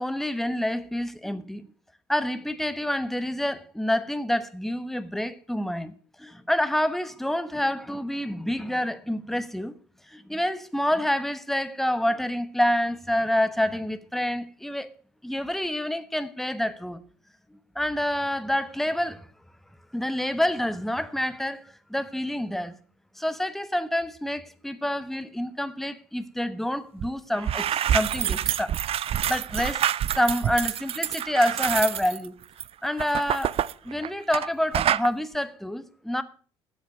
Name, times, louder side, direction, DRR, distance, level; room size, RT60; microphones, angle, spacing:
voice 1, 0.0-1.7 2.1-9.7 10.1-14.9 15.2-17.0 17.7-19.3 19.9-22.8 23.2-28.7 29.3-32.4 32.8-36.2, left 1 dB, ahead, 1.1 m, -27 dB
sound 1, 27.0-27.1 27.3-34.5 34.7-35.1, right 10 dB, 40° right, 0.5 m, -27 dB
12.0 x 7.9 x 6.7 m
hypercardioid pair, 60°, 14 cm